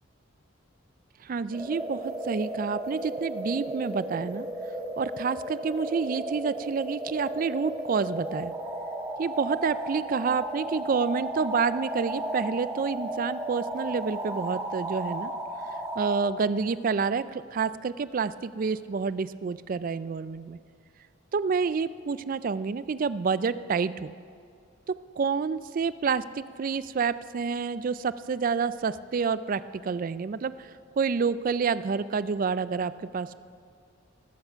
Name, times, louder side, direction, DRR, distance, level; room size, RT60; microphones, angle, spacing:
voice 1, 1.2-4.5 5.0-8.5 9.2-15.3 16.0-20.6 21.3-24.1 25.2-30.7 31.0-33.3, right 5 dB, 45° right, 16 dB, 0.3 m, -28 dB
sound 1, 1.5-16.2, right 1 dB, 15° right, 1.5 m, -34 dB
19.0 x 8.2 x 5.6 m, 2.3 s
head